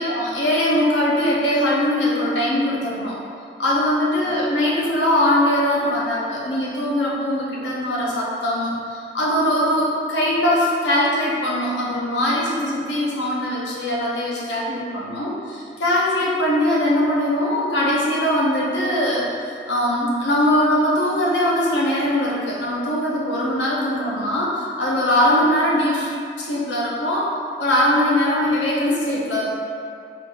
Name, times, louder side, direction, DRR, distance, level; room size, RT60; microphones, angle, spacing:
voice 1, 0.0-3.2 3.6-26.1 26.4-27.3 27.6-29.4, left 1 dB, 85° left, -5 dB, 0.8 m, -21 dB
4.1 x 2.5 x 3.4 m, 2.3 s
head